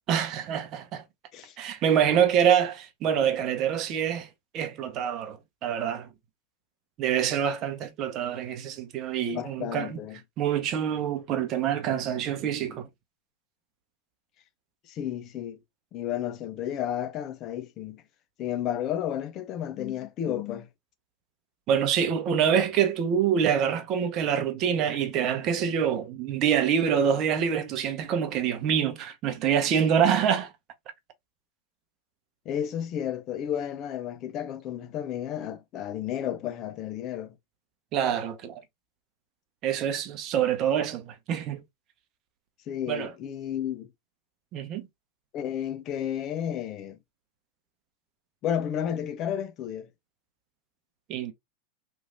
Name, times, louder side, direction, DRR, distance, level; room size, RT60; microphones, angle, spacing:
voice 1, 0.1-1.0 1.6-4.3 4.5-6.1 7.0-10.0 10.4-12.9 21.7-30.5 37.9-38.6 39.6-41.6 42.9-43.1 44.5-44.9 51.1-51.3, right 8 dB, 45° right, 0.8 m, -26 dB
voice 2, 9.3-10.2 14.9-15.6 15.9-18.0 18.4-20.7 32.5-37.3 42.7-43.9 45.3-47.0 48.4-49.9, left 10 dB, 40° left, 0.6 m, -32 dB
3.1 x 2.6 x 2.5 m
hypercardioid pair, 95°, 0 cm